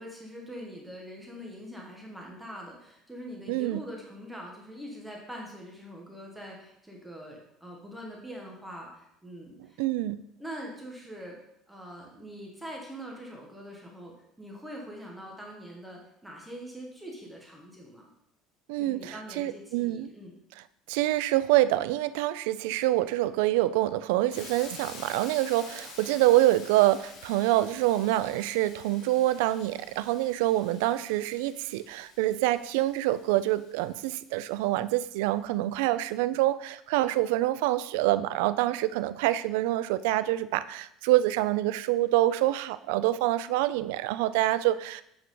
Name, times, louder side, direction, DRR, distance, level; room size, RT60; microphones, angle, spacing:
voice 1, 0.0-9.8 10.4-11.4 11.7-18.1 18.8-20.3, equal, 5° right, -1 dB, 1.4 m, -43 dB
voice 2, 3.5-3.8 9.8-10.2 18.7-20.1 20.9-45.0, right 15 dB, 90° right, 15 dB, 0.3 m, -26 dB
Hiss, 24.3-34.2, left 3 dB, 75° left, 2.3 m, -49 dB
8.0 x 4.7 x 3.8 m, 0.76 s
cardioid pair, 130°, 0 cm